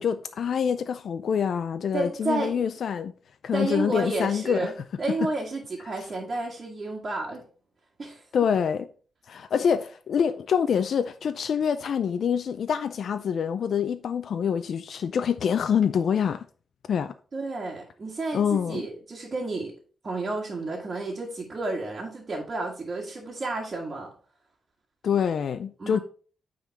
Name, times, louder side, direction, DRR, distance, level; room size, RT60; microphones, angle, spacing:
voice 1, 0.0-3.1 3.4-4.7 8.3-8.9 9.3-16.4 16.9-17.1 18.3-18.9 25.0-26.0, left 7 dB, 70° left, 0.4 m, -26 dB
voice 2, 1.9-2.6 3.5-4.7 5.0-7.4 8.0-8.2 17.3-19.7 20.0-24.1 25.8-26.0, right 2 dB, 40° right, 1.7 m, -31 dB
9.3 x 3.8 x 4.1 m
cardioid pair, 105°, 0 cm